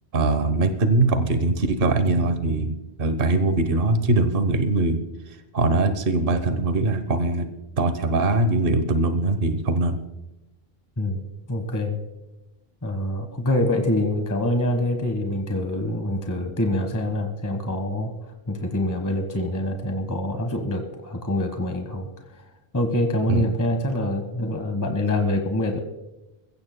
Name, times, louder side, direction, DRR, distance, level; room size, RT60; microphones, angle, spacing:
voice 1, 0.1-5.0 5.3-7.5 7.8-10.0 23.3-23.5, right 2 dB, 60° right, 9 dB, 1.2 m, -22 dB
voice 2, 11.0-12.0 12.8-18.1 18.5-22.1 22.3-22.4 22.7-25.8, left 1 dB, 15° left, 5 dB, 1.3 m, -25 dB
22.0 x 16.0 x 2.2 m, 0.97 s
omnidirectional pair, 1.1 m